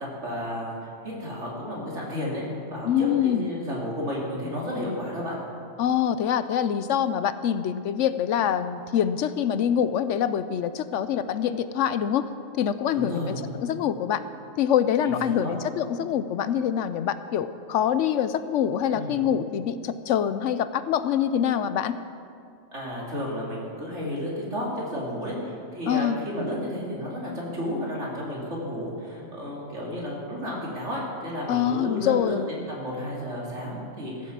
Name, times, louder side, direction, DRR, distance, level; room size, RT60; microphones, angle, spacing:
voice 1, 0.2-0.7 1.0-2.4 2.7-5.4 12.9-13.3 15.0-15.6 18.9-19.2 22.7-34.3, left 1 dB, 65° right, -4 dB, 3.2 m, -32 dB
voice 2, 2.8-3.5 5.8-12.3 12.6-13.2 13.5-14.2 14.6-22.0 25.9-26.2 31.5-32.4, left 9 dB, 75° left, 13 dB, 0.9 m, -25 dB
16.0 x 7.6 x 7.4 m, 2.4 s
omnidirectional pair, 1.3 m